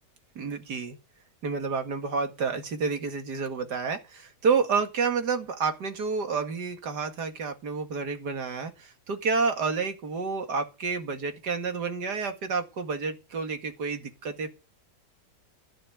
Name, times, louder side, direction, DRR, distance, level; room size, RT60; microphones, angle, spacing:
voice 1, 0.4-1.0 1.4-14.5, right 5 dB, 85° right, 2.5 m, -29 dB
15.5 x 6.5 x 7.9 m
omnidirectional pair, 1.7 m